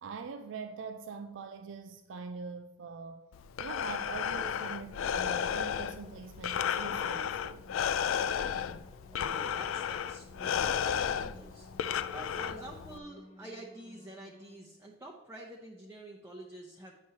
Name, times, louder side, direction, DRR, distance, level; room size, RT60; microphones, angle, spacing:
voice 1, 0.0-3.2 3.6-7.7, right 5 dB, 65° right, 0.4 m, -43 dB
Breathing, 3.3-13.0, left 8 dB, 80° left, 0.3 m, -33 dB
sound 1, 3.9-14.5, equal, 30° left, 0.9 m, -57 dB
voice 2, 9.1-11.7 12.1-16.9, right 1 dB, 15° right, 0.7 m, -48 dB
9.6 x 6.1 x 2.8 m
head